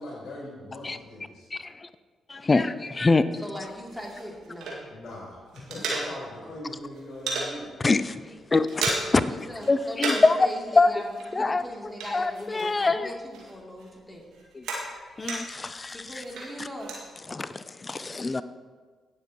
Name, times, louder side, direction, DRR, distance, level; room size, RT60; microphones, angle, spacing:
voice 1, 0.0-1.5 4.9-7.7, left 1 dB, 55° left, 3.1 m, -40 dB
voice 2, 1.5-1.9 2.3-3.2 7.8-8.2 8.5-9.2 9.7-10.4 10.8-10.9 11.3-11.6 12.1-13.1 14.5-14.6 15.2-16.0 17.3-18.4, left 3 dB, 35° left, 0.5 m, -24 dB
voice 3, 3.4-4.8 8.2-8.3 9.1-14.2 15.9-16.9, equal, ahead, 3.0 m, -39 dB
sound 1, 3.6-5.1 5.4-6.5 6.8-7.5 7.9-8.1 8.4-9.3 9.6-10.4 10.7-13.0 13.3-15.7 16.1-17.0, right 3 dB, 70° right, 2.1 m, -34 dB
17.5 x 7.2 x 3.1 m
hypercardioid pair, 40°, 0 cm